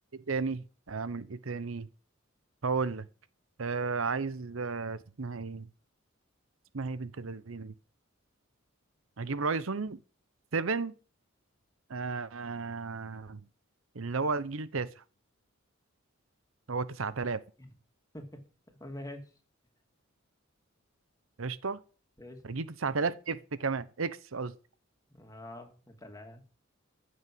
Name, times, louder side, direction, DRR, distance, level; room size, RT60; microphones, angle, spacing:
voice 1, 0.1-1.9 2.6-3.0 3.6-5.7 6.7-7.7 9.2-10.0 10.5-10.9 11.9-13.4 14.0-14.9 16.7-17.4 21.4-21.8 22.5-24.5, right 4 dB, 75° right, 0.8 m, -33 dB
voice 2, 18.1-19.3 22.2-22.4 25.1-26.4, left 1 dB, 15° left, 2.5 m, -46 dB
15.0 x 6.3 x 7.7 m
head